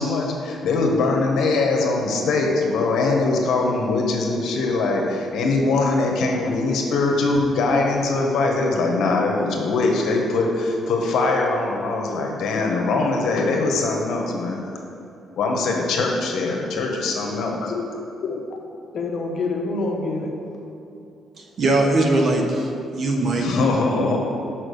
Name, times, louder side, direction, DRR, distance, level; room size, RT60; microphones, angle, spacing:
voice 1, 0.0-14.6 15.4-17.6 23.3-24.2, left 3 dB, 75° left, 0 dB, 1.4 m, -22 dB
voice 2, 18.9-20.3 23.9-24.2, left 3 dB, 55° left, 1 dB, 1.2 m, -26 dB
voice 3, 21.6-23.6, right 2 dB, 55° right, 1 dB, 1.2 m, -20 dB
6.3 x 5.9 x 6.5 m, 2.7 s
cardioid pair, 90°, 0 cm